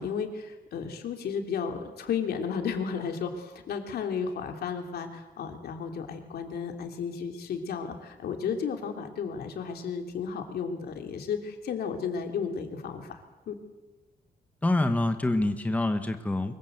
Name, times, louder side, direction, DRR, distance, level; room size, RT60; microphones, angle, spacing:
voice 1, 0.0-13.2 13.5-13.6, left 6 dB, 85° left, 5 dB, 3.2 m, -33 dB
voice 2, 14.6-16.5, left 2 dB, 10° left, 7 dB, 1.3 m, -26 dB
24.5 x 22.5 x 8.0 m, 1.1 s
wide cardioid pair, 175°, 16 cm